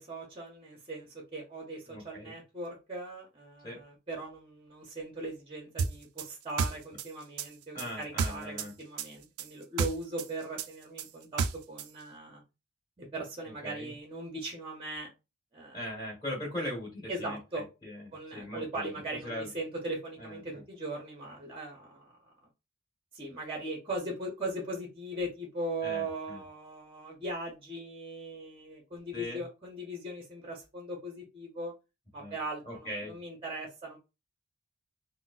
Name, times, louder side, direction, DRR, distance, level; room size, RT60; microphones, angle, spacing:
voice 1, 0.0-12.4 13.0-15.1 15.5-15.8 17.1-17.7 18.1-22.1 23.1-31.7 32.1-34.0, right 1 dB, 25° right, 0.7 m, -39 dB
voice 2, 1.9-2.3 3.6-3.8 7.7-8.7 13.4-13.9 15.7-18.9 19.2-19.5 20.2-20.6 25.8-26.4 29.1-29.4 32.2-32.3 32.6-33.2, left 1 dB, 20° left, 1.7 m, -40 dB
sound 1, 5.8-8.7 9.0-11.9, right 5 dB, 90° right, 0.4 m, -32 dB
3.9 x 2.0 x 2.4 m
head